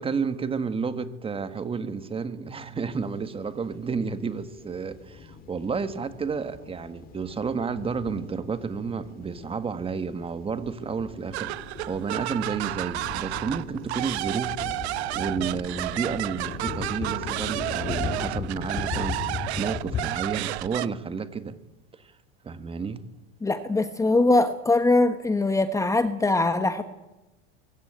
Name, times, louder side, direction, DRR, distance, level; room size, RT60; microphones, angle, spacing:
voice 1, 0.0-11.5 11.9-14.6 14.8-21.5 21.9-22.1 22.4-23.0, right 5 dB, 15° right, 1.7 m, -31 dB
sound 1, 2.9-3.1 3.4-20.1, left 6 dB, 25° left, 2.6 m, -38 dB
sound 2, 11.3-20.9, right 17 dB, 80° right, 1.1 m, -31 dB
voice 2, 23.4-26.8, left 2 dB, 10° left, 1.2 m, -22 dB
23.5 x 22.5 x 8.9 m
supercardioid pair, 140°, 32 cm